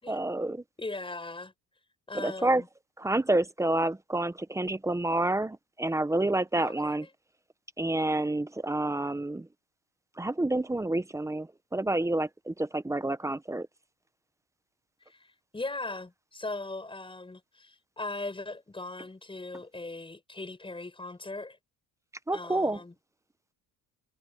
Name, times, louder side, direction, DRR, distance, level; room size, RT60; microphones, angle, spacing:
voice 1, 0.1-0.6 2.2-2.6 3.0-7.0 7.8-9.4 10.2-11.5 11.7-13.7 22.3-22.8, right 2 dB, 10° right, 0.8 m, -28 dB
voice 2, 0.8-1.5 2.1-2.7 6.6-7.1 15.1-21.6 22.3-22.9, left 2 dB, 15° left, 6.9 m, -39 dB
cardioid pair, 125°, 38 cm